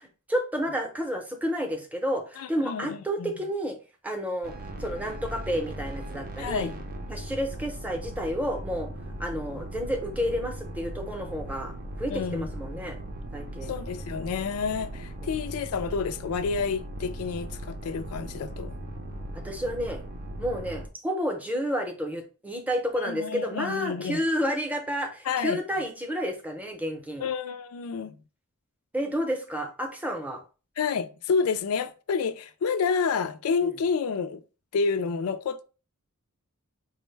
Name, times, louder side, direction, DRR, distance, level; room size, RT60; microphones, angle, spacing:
voice 1, 0.0-3.8 4.0-4.5 4.8-6.7 7.1-8.9 9.2-13.0 13.3-13.7 15.2-15.3 19.4-20.0 20.4-27.2 28.9-30.4, equal, 5° right, 0.7 m, -30 dB
voice 2, 2.4-3.3 6.4-6.8 12.1-12.5 13.6-18.8 23.0-24.2 25.2-25.6 27.2-28.2 30.8-34.4 34.7-35.6, left 5 dB, 80° left, 0.4 m, -29 dB
sound 1, 4.4-20.9, right 1 dB, 45° right, 0.6 m, -38 dB
5.1 x 2.1 x 3.2 m
head